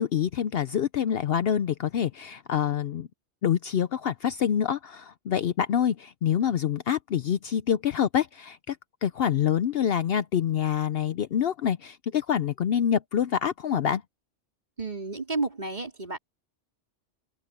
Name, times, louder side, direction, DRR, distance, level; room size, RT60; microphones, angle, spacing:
voice 1, 0.0-3.1 3.4-14.0, left 9 dB, 60° left, 0.7 m, -26 dB
voice 2, 14.8-16.2, right 3 dB, 40° right, 3.8 m, -31 dB
open air
omnidirectional pair, 1.2 m